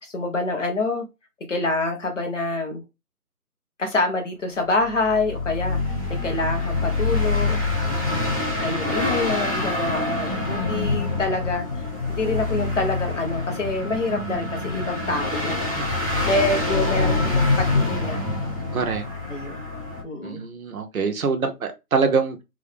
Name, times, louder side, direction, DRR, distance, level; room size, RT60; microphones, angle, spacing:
voice 1, 0.0-1.0 1.5-2.8 3.8-7.6 8.6-11.7 12.1-15.7 16.3-18.2 19.3-19.6 20.0-20.4, left 2 dB, 55° left, 1.2 m, -26 dB
sound 1, 4.8-20.0, left 3 dB, 25° left, 1.0 m, -25 dB
voice 2, 18.7-19.0 20.2-22.4, right 5 dB, 65° right, 0.8 m, -25 dB
3.7 x 2.2 x 3.3 m
hypercardioid pair, 175°, 46 cm